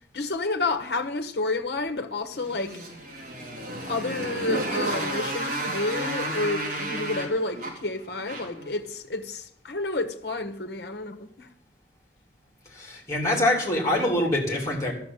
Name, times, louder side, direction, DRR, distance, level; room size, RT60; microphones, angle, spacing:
voice 1, 0.1-2.8 3.8-11.5, left 2 dB, 65° left, 1.3 m, -30 dB
Motorcycle, 2.3-8.7, right 1 dB, 50° right, 3.4 m, -32 dB
voice 2, 12.7-14.9, left 1 dB, 15° left, 3.6 m, -24 dB
12.0 x 7.0 x 9.1 m
head